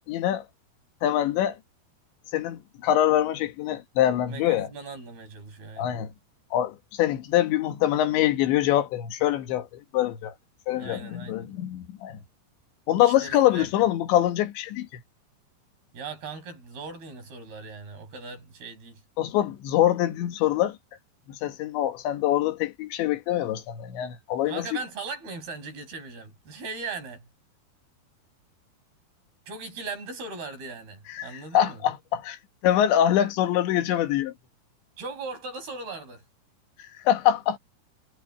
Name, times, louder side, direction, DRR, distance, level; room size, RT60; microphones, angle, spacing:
voice 1, 0.1-0.5 1.0-1.6 2.3-4.7 5.8-6.1 6.5-10.3 10.7-12.2 12.9-15.0 19.2-20.8 21.3-24.7 31.1-31.3 31.5-32.4 32.6-34.3 36.8-37.6, left 12 dB, 85° left, 3.9 m, -24 dB
voice 2, 4.3-6.0 10.8-11.6 13.0-13.9 15.9-19.0 24.4-27.3 29.5-31.8 35.0-36.2, right 4 dB, 60° right, 8.3 m, -39 dB
omnidirectional pair, 5.1 m